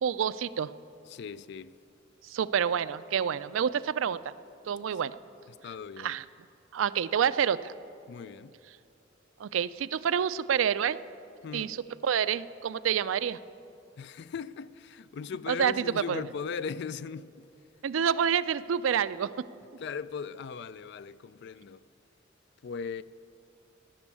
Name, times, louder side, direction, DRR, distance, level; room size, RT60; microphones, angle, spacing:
voice 1, 0.0-0.7 2.2-4.2 4.7-5.2 6.0-6.2 6.7-7.7 9.4-11.0 11.5-11.8 12.0-13.4 15.5-16.2 17.8-19.3, right 8 dB, 85° right, 0.4 m, -28 dB
voice 2, 1.1-1.7 5.6-6.2 8.1-8.5 11.4-11.7 14.0-17.4 19.8-21.8 22.6-23.0, left 6 dB, 60° left, 0.3 m, -38 dB
17.5 x 6.3 x 8.3 m
head